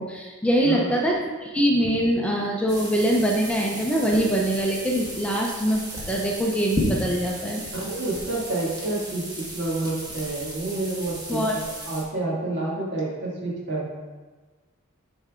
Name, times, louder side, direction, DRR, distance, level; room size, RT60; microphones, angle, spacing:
voice 1, 0.0-7.6 11.3-11.6, right 1 dB, 5° left, -2 dB, 0.6 m, -23 dB
sound 1, 2.7-12.0, equal, 20° right, 1.6 m, -34 dB
voice 2, 7.7-9.2 9.5-13.9, right 2 dB, 55° right, -6 dB, 2.2 m, -29 dB
8.6 x 4.3 x 3.7 m, 1.3 s
head